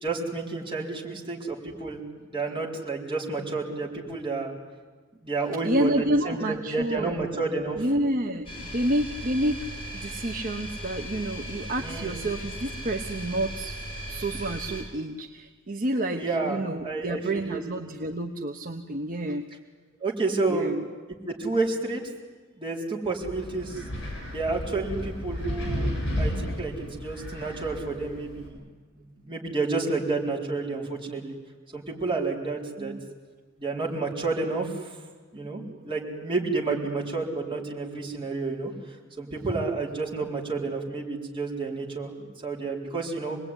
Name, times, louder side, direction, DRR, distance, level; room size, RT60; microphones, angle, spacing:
voice 1, 0.0-4.5 5.2-7.8 11.8-12.2 16.1-16.6 16.8-17.6 20.0-20.8 21.3-22.0 22.6-23.8 24.3-25.9 26.2-28.6 28.9-31.4 31.7-32.9 33.6-35.0 35.3-43.4, right 3 dB, 25° right, -2 dB, 4.3 m, -30 dB
voice 2, 5.6-7.2 7.8-9.7 9.9-13.8 14.1-19.4 20.5-20.9 32.8-33.0, right 1 dB, 45° right, 4 dB, 1.2 m, -29 dB
sound 1, 8.4-14.8, equal, 25° left, 6.9 m, -37 dB
Wind, 23.2-28.5, left 1 dB, 60° left, 7.7 m, -33 dB
26.5 x 20.5 x 10.0 m, 1.4 s
head